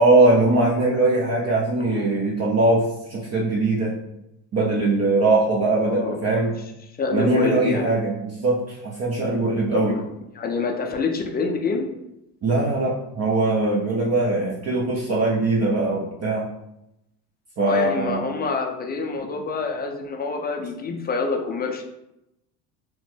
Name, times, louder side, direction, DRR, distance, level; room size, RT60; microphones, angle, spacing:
voice 1, 0.0-3.9 4.5-6.5 7.1-10.0 12.4-16.5 17.6-18.2, right 2 dB, 35° right, -4 dB, 0.5 m, -21 dB
voice 2, 5.7-6.2 7.0-7.9 9.7-10.0 10.4-11.9 17.7-21.8, left 4 dB, 20° left, 3 dB, 0.4 m, -26 dB
3.0 x 2.1 x 3.1 m, 0.86 s
supercardioid pair, 80°, 47 cm